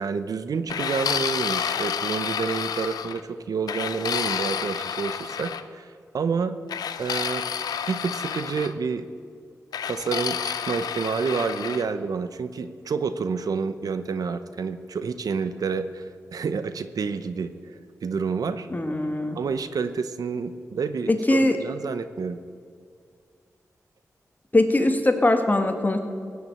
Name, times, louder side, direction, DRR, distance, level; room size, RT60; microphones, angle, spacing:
voice 1, 0.0-6.6 7.0-7.4 7.9-9.1 9.9-16.0 16.3-17.5 18.0-18.7 19.3-22.4, right 5 dB, 75° right, 11 dB, 0.8 m, -29 dB
sound 1, 0.7-3.2 3.7-5.6 6.7-8.7 9.7-11.9, left 8 dB, 85° left, 0.6 m, -29 dB
voice 2, 18.7-19.4 21.1-21.6 24.5-26.0, left 1 dB, 30° left, 6 dB, 1.9 m, -21 dB
17.5 x 7.0 x 8.8 m, 2.2 s
cardioid pair, 40°, 6 cm